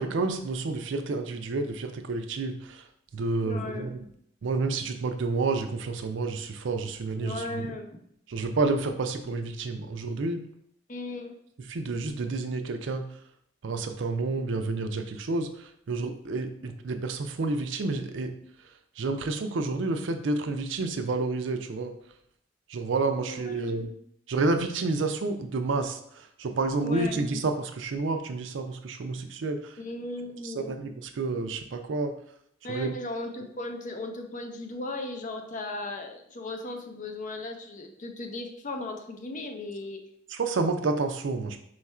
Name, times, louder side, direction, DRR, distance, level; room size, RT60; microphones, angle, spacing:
voice 1, 0.0-2.8 3.1-4.0 4.4-7.7 8.3-10.5 11.6-13.1 13.6-18.3 19.0-21.9 22.7-23.9 24.3-29.8 30.4-32.1 32.7-32.9 40.3-41.6, right 3 dB, 65° right, 7 dB, 0.5 m, -29 dB
voice 2, 3.4-3.9 7.2-7.9 10.9-11.3 23.3-23.8 26.8-27.2 29.8-30.8 32.6-40.0, left 2 dB, 40° left, 5 dB, 0.5 m, -36 dB
4.5 x 2.4 x 4.2 m, 0.69 s
head